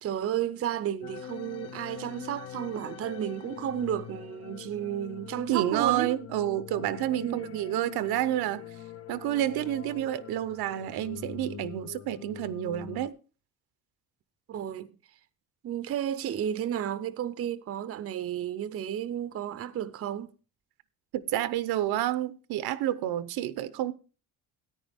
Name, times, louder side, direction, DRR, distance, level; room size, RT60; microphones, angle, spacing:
voice 1, 0.0-6.2 7.2-7.6 14.5-14.9 15.6-20.3, right 10 dB, 40° right, 0.6 m, -32 dB
sound 1, 1.0-13.1, left 10 dB, 40° left, 0.6 m, -44 dB
voice 2, 5.5-8.6 9.1-13.1 21.1-23.9, right 13 dB, 80° right, 0.8 m, -29 dB
13.5 x 9.8 x 3.5 m
cardioid pair, 140°, 37 cm